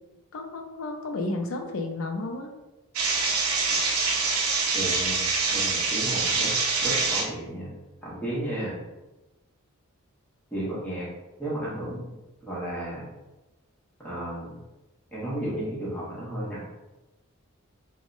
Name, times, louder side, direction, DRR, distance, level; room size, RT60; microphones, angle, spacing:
voice 1, 0.3-2.5, left 2 dB, 65° left, 3 dB, 0.4 m, -32 dB
sound 1, 3.0-7.3, right 4 dB, 75° right, 0.5 m, -25 dB
voice 2, 4.7-6.5 6.8-7.7 8.0-8.8 10.5-11.1 11.4-12.1 12.4-13.1 14.0-14.6 15.1-16.6, right 1 dB, 10° left, -8 dB, 0.9 m, -33 dB
3.4 x 2.1 x 2.5 m, 1.1 s
head